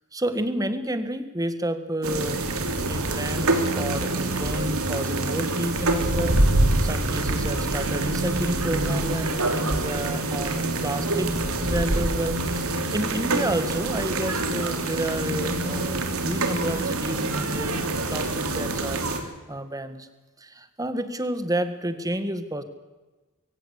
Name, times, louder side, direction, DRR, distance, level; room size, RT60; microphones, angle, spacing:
voice 1, 0.1-6.4 6.8-20.1 20.4-22.6, right 1 dB, 15° right, 10 dB, 1.7 m, -30 dB
sound 1, 2.0-19.2, right 2 dB, 85° right, 3.0 m, -25 dB
22.0 x 17.0 x 8.3 m, 1.2 s
head